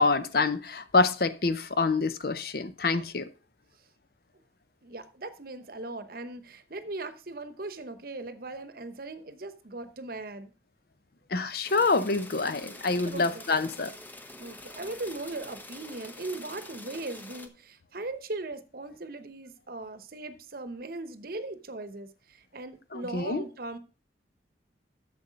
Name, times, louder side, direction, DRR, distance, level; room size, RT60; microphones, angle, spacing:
voice 1, 0.0-3.3 11.3-13.9 22.9-23.4, left 3 dB, 55° left, 0.7 m, -26 dB
voice 2, 4.8-10.5 11.5-11.6 13.1-13.4 14.4-23.8, right 2 dB, 50° right, 0.9 m, -39 dB
Film on old projector, 11.6-17.5, left 1 dB, 10° left, 0.7 m, -45 dB
8.0 x 7.1 x 5.0 m
head